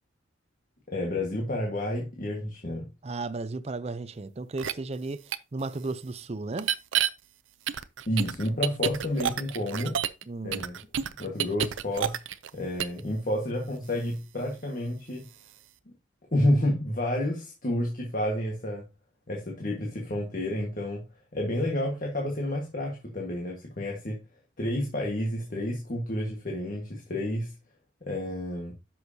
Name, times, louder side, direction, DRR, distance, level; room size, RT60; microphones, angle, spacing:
voice 1, 0.9-2.9 8.1-10.0 10.4-10.8 11.2-12.2 12.5-15.2 15.9-16.0 16.3-18.8 19.3-21.1 21.3-24.2 24.6-27.5 28.0-28.7, left 1 dB, 45° left, 1.6 m, -30 dB
voice 2, 3.0-5.2 5.5-6.7 10.3-10.6, right 3 dB, 30° right, 0.5 m, -34 dB
sound 1, 4.6-4.7 5.3-5.4 6.6-7.1 7.7-10.2 10.5-12.5 12.8-13.0, right 9 dB, 80° right, 0.5 m, -28 dB
10.0 x 6.3 x 2.7 m
head